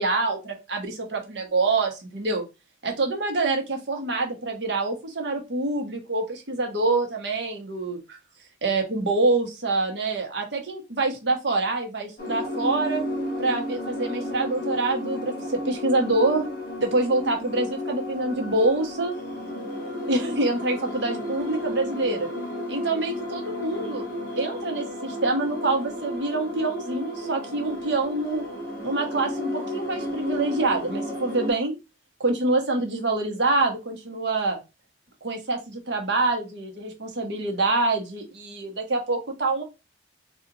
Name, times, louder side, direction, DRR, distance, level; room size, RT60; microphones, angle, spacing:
voice 1, 0.0-2.4 2.8-8.2 8.6-13.0 13.4-16.5 16.8-19.1 20.1-22.3 22.7-24.1 24.4-28.4 28.8-31.7 32.2-34.6 35.2-39.6, right 2 dB, 65° right, 2 dB, 1.0 m, -26 dB
sound 1, 12.2-31.5, left 1 dB, 50° left, 1.1 m, -33 dB
2.8 x 2.4 x 3.9 m, 0.26 s
head